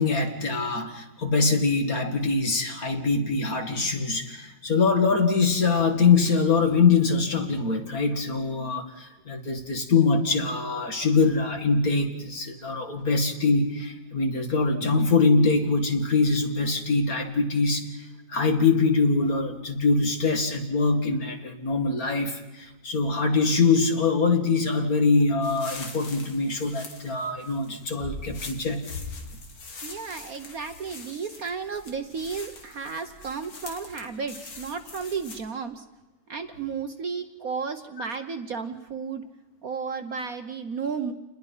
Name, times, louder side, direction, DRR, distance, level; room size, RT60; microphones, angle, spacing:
voice 1, 0.0-17.9 18.3-28.8, left 4 dB, 45° left, 5 dB, 2.4 m, -23 dB
sound 1, 25.4-35.4, left 3 dB, 80° left, 3.4 m, -42 dB
voice 2, 29.8-35.8 36.3-39.2 39.6-41.1, right 5 dB, 55° right, 8 dB, 1.3 m, -33 dB
28.5 x 21.0 x 5.6 m, 1.1 s
omnidirectional pair, 2.2 m